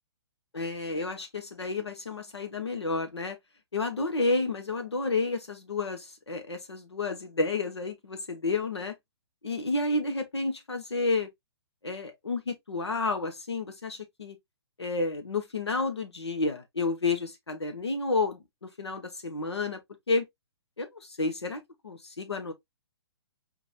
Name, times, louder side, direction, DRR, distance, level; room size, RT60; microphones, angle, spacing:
voice 1, 0.5-3.4 3.7-8.9 9.4-11.3 11.8-14.4 14.8-19.8 20.1-20.2 20.8-22.5, left 3 dB, 80° left, 1.3 m, -31 dB
4.5 x 3.1 x 2.5 m
figure-of-eight pair, 125°, 14 cm